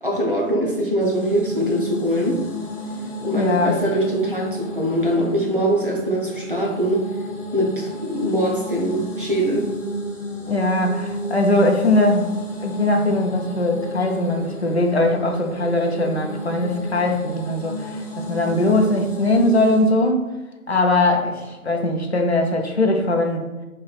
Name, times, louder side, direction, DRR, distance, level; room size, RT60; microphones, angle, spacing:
voice 1, 0.0-2.4 3.2-7.1 7.5-9.7, equal, 40° right, -1 dB, 0.6 m, -22 dB
sound 1, 1.0-19.9, right 1 dB, 10° right, 1.4 m, -32 dB
voice 2, 3.3-3.8 10.5-12.3 12.6-20.3 20.7-23.5, left 2 dB, 50° left, 2 dB, 0.5 m, -20 dB
5.3 x 3.1 x 2.4 m, 1.1 s
figure-of-eight pair, 175°, 43 cm